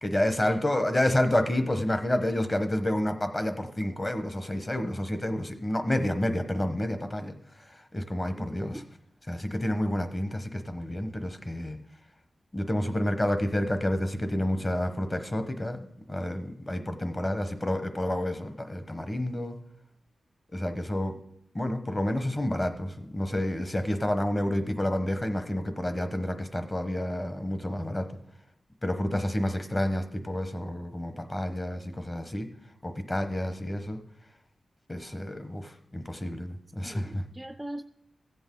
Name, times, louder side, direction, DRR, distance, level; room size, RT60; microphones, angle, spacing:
voice 1, 0.0-8.8 9.3-11.8 12.5-19.6 20.5-21.2 21.5-28.1 28.8-32.5 32.8-34.0 34.9-37.2, left 1 dB, 25° left, 8 dB, 1.0 m, -29 dB
voice 2, 8.4-8.9 36.9-37.8, right 1 dB, 10° right, 10 dB, 0.3 m, -40 dB
14.5 x 8.0 x 3.8 m, 0.76 s
wide cardioid pair, 90°, 0 cm